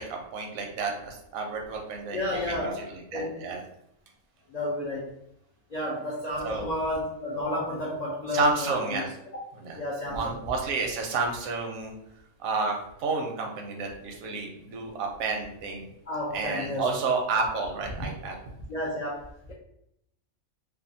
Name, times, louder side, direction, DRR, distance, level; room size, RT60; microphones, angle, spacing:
voice 1, 0.0-2.2 2.5-3.6 6.4-6.7 8.3-9.1 9.6-9.8 10.1-11.9 12.4-15.9 16.3-18.4, right 4 dB, 85° right, 2 dB, 1.0 m, -30 dB
voice 2, 2.1-2.9 3.1-3.4 4.5-5.1 5.7-9.0 9.8-10.4 16.1-16.9 18.0-18.1 18.7-19.5, left 1 dB, 90° left, -5 dB, 0.3 m, -31 dB
2.7 x 2.3 x 2.6 m, 0.78 s
omnidirectional pair, 1.4 m